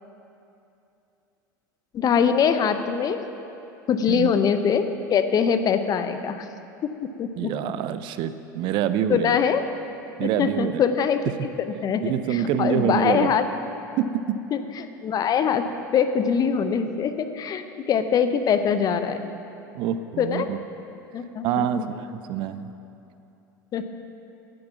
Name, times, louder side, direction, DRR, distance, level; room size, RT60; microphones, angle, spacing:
voice 1, 1.9-3.2 3.9-6.5 6.8-7.5 9.1-9.6 10.2-13.4 14.5-15.6 15.9-19.3 20.2-20.5 21.1-21.9 23.7-23.8, left 7 dB, 35° left, 9 dB, 0.7 m, -23 dB
voice 2, 7.4-9.4 10.2-10.8 12.0-13.3 14.0-14.4 19.7-20.6 21.4-22.7, right 9 dB, 50° right, 12 dB, 0.5 m, -26 dB
10.0 x 9.6 x 5.9 m, 2.8 s
hypercardioid pair, 75°, 11 cm